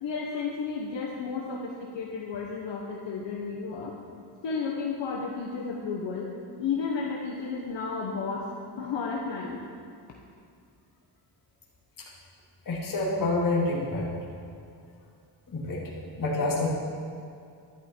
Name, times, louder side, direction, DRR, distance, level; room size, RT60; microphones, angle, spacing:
voice 1, 0.0-3.9 4.4-8.5 8.8-9.6, left 5 dB, 65° left, -2 dB, 1.3 m, -32 dB
voice 2, 12.7-14.1 15.5-15.8 16.2-16.7, left 2 dB, 45° left, -5 dB, 2.7 m, -27 dB
11.5 x 11.0 x 4.6 m, 2.4 s
cardioid pair, 130°, 46 cm